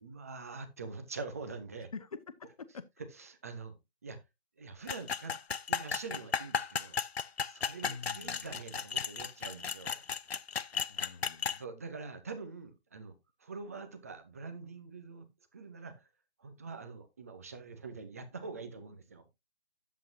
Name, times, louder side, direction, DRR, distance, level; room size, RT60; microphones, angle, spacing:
voice 1, 0.0-1.9 3.2-3.8 4.0-4.2 4.6-5.3 5.7-7.0 7.4-10.0 11.6-13.1 13.4-15.3 15.5-16.1 16.4-19.2, right 4 dB, 15° right, 0.7 m, -45 dB
voice 2, 1.9-2.9 7.8-8.5 10.9-11.6, left 4 dB, 35° left, 0.8 m, -46 dB
sound 1, 4.9-11.6, left 6 dB, 70° left, 0.7 m, -35 dB
10.5 x 7.9 x 2.7 m
figure-of-eight pair, 150°, 32 cm